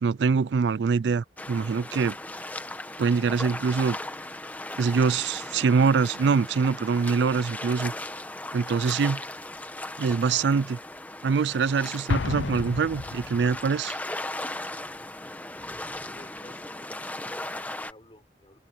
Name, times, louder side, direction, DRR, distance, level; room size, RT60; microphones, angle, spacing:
voice 1, 0.0-2.2 3.0-4.0 4.8-7.9 8.5-9.2 10.0-10.8 11.2-14.0, right 5 dB, 70° right, 0.4 m, -24 dB
sound 1, 1.4-17.9, left 1 dB, 10° left, 1.3 m, -37 dB
Explosion, 12.1-13.7, left 3 dB, 85° left, 0.6 m, -30 dB
voice 2, 16.0-18.6, left 1 dB, 30° left, 6.0 m, -54 dB
open air
head